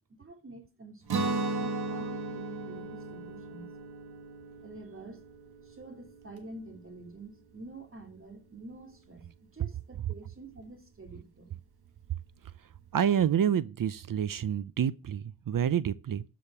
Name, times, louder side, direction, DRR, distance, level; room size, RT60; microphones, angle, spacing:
voice 1, 0.1-3.7 4.6-5.2 5.6-11.6, right 2 dB, 35° right, 2.6 m, -48 dB
Guitar, 1.1-6.9, right 3 dB, 85° right, 1.8 m, -36 dB
voice 2, 12.9-16.2, right 9 dB, 60° right, 0.6 m, -28 dB
12.5 x 5.2 x 7.0 m
wide cardioid pair, 105°, 37 cm